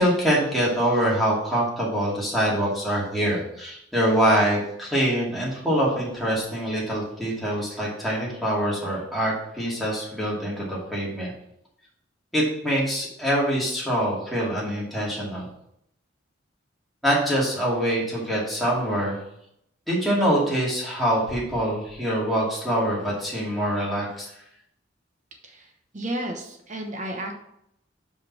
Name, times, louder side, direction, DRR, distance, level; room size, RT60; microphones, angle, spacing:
voice 1, 0.0-11.3 12.3-15.5 17.0-19.2 19.9-24.3, equal, ahead, -6 dB, 2.4 m, -24 dB
voice 2, 25.4-27.3, right 1 dB, 40° right, 3 dB, 1.0 m, -33 dB
5.3 x 5.1 x 6.0 m, 0.75 s
head